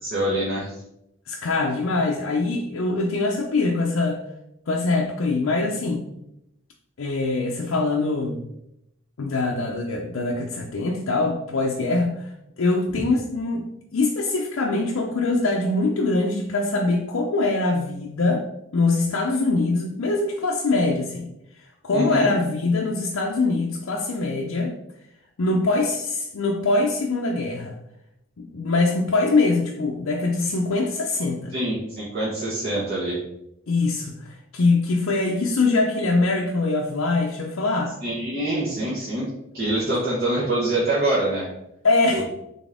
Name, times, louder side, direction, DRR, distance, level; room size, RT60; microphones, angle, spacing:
voice 1, 0.0-0.7 21.9-22.3 31.5-33.2 38.0-39.3 39.5-41.5 42.1-42.2, right 1 dB, 45° right, -8 dB, 1.1 m, -25 dB
voice 2, 1.3-4.2 4.7-6.0 7.0-8.4 9.2-18.5 18.7-21.3 21.6-24.8 25.4-27.8 28.4-31.5 33.7-38.0 41.8-42.2, left 3 dB, 70° left, -1 dB, 0.5 m, -23 dB
4.1 x 3.6 x 3.5 m, 0.81 s
head